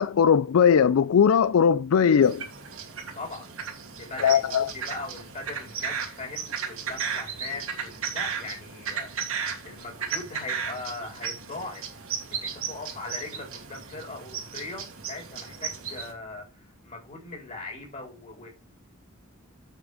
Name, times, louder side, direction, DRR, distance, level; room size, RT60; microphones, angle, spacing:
voice 1, 0.0-2.4 4.2-4.7, left 7 dB, 85° left, 0.4 m, -19 dB
sound 1, 2.2-16.1, right 7 dB, 80° right, 2.7 m, -35 dB
voice 2, 3.1-3.5 3.9-11.8 12.3-18.5, left 3 dB, 35° left, 4.6 m, -40 dB
8.1 x 6.2 x 5.1 m
head